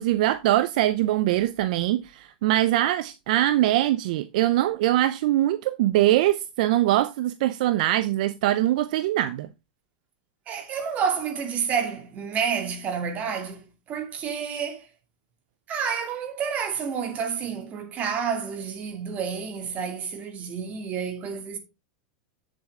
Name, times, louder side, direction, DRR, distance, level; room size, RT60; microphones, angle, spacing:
voice 1, 0.0-9.5, right 14 dB, 65° right, 0.6 m, -22 dB
voice 2, 10.5-14.8 15.7-21.6, right 6 dB, 35° right, 2.6 m, -29 dB
7.9 x 7.3 x 3.7 m
supercardioid pair, 125°, 5 cm